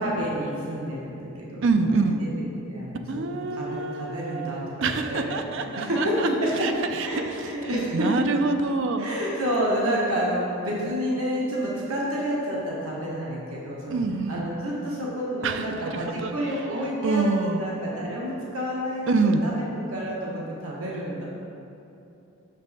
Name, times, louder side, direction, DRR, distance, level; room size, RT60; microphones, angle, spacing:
voice 1, 0.0-2.3 2.7-6.7 7.0-8.1 9.0-14.0 14.3-19.6 19.9-21.3, equal, 75° right, -5 dB, 1.2 m, -29 dB
voice 2, 1.6-2.3 3.1-6.3 6.6-9.1 13.9-14.5 15.4-16.3 17.0-17.6 19.1-19.5, right 3 dB, 60° right, 7 dB, 0.4 m, -26 dB
6.2 x 5.3 x 4.1 m, 2.8 s
head